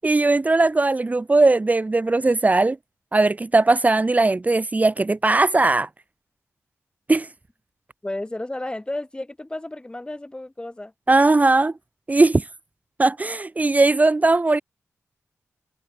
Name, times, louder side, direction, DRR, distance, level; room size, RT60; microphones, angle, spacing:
voice 1, 0.0-2.8 3.1-5.9 7.1-7.3 11.1-11.7 12.1-12.4 13.0-14.6, right 2 dB, 30° right, 1.0 m, -18 dB
voice 2, 8.0-10.9, left 1 dB, 15° left, 3.4 m, -32 dB
wide cardioid pair, 80°, 5 cm